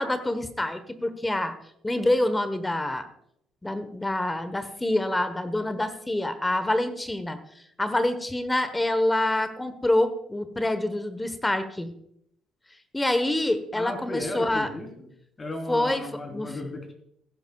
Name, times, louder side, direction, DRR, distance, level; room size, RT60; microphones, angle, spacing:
voice 1, 0.0-1.5 1.8-3.1 3.6-7.4 7.8-11.9 12.9-14.7 15.7-16.5, left 1 dB, 15° left, 11 dB, 1.1 m, -26 dB
voice 2, 13.7-15.1 15.4-16.9, left 2 dB, 30° left, 3 dB, 3.5 m, -35 dB
17.5 x 10.5 x 2.3 m, 0.72 s
supercardioid pair, 75°, 0 cm